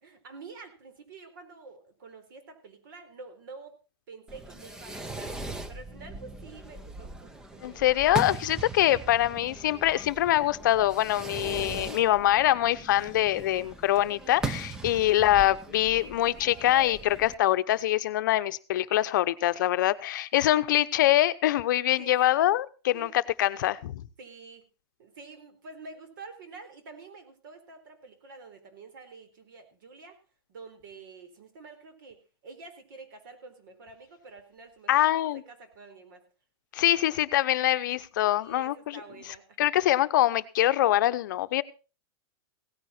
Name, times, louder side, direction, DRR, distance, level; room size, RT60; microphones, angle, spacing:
voice 1, 0.0-3.8 4.1-5.4 5.7-7.7 8.7-8.8 14.8-15.0 22.0-22.4 22.9-23.1 24.2-24.6 25.0-30.2 30.5-36.2 38.4-39.6, right 4 dB, 55° right, 8 dB, 4.1 m, -48 dB
Fireworks, 4.3-17.3, right 2 dB, 5° right, 0.6 m, -40 dB
voice 2, 7.6-23.1 23.4-24.0 34.9-35.4 36.7-39.0 39.6-41.6, left 14 dB, 50° left, 13 dB, 0.8 m, -24 dB
17.0 x 9.8 x 4.4 m, 0.35 s
supercardioid pair, 175°, 13 cm